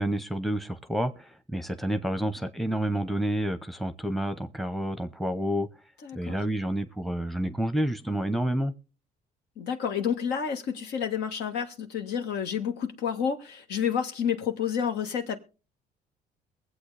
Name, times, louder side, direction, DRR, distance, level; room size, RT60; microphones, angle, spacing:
voice 1, 0.0-5.7 6.1-8.7, right 1 dB, ahead, 0.8 m, -29 dB
voice 2, 6.0-6.4 9.6-15.4, left 7 dB, 80° left, 1.6 m, -30 dB
22.5 x 8.0 x 3.3 m
cardioid pair, 110°, 17 cm